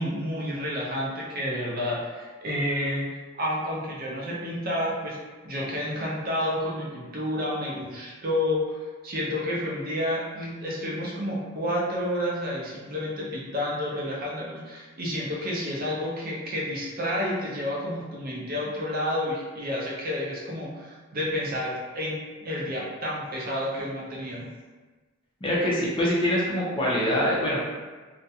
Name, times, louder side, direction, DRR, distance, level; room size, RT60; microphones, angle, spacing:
voice 1, 0.0-3.1 3.4-5.2 5.4-24.5, left 1 dB, 45° right, -4 dB, 0.5 m, -30 dB
voice 2, 25.4-27.6, equal, 25° left, -6 dB, 0.5 m, -24 dB
2.4 x 2.1 x 2.7 m, 1.3 s
head